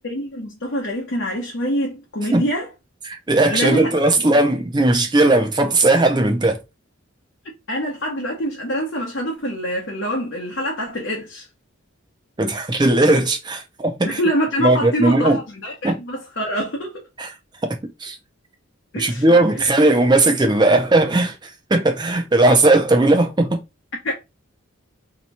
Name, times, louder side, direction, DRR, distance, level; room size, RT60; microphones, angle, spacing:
voice 1, 0.0-2.7 3.5-3.9 4.2-4.3 7.7-11.5 14.0-17.0 18.9-19.3 24.0-24.1, equal, 55° left, 0.8 m, -25 dB
voice 2, 3.1-6.6 12.4-14.2 14.6-15.4 15.8-16.0 17.2-17.3 18.0-18.2 19.0-23.6, right 2 dB, 20° right, 0.5 m, -17 dB
2.8 x 2.3 x 4.0 m
head